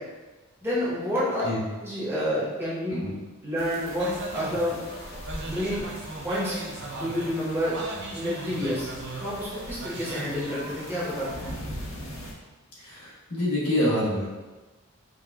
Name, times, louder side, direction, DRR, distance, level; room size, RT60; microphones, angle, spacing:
voice 1, 0.6-1.4 1.8-2.9 3.4-4.8 5.4-5.8 6.2-6.6 6.9-7.8 8.1-8.9 9.2-11.3, equal, 10° right, -9 dB, 0.9 m, -29 dB
sound 1, 3.6-12.3, equal, 65° left, 0.6 m, -41 dB
sound 2, 4.0-11.6, right 2 dB, 50° right, 0.4 m, -38 dB
voice 2, 12.8-14.2, left 1 dB, 85° left, -7 dB, 1.1 m, -26 dB
4.8 x 2.2 x 2.2 m, 1.2 s
head